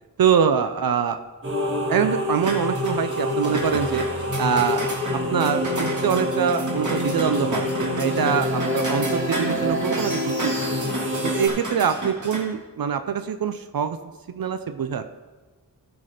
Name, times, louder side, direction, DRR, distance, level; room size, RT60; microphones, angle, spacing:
voice 1, 0.2-1.2 1.9-4.0 4.4-4.8 5.1-10.7 11.2-14.0 14.3-15.1, right 7 dB, 70° right, 10 dB, 0.6 m, -24 dB
sound 1, 1.4-11.5, left 1 dB, 35° right, 2.3 m, -26 dB
sound 2, 2.4-12.4, right 2 dB, 55° right, 2.0 m, -33 dB
14.0 x 6.1 x 5.0 m, 1.3 s
wide cardioid pair, 70°, 36 cm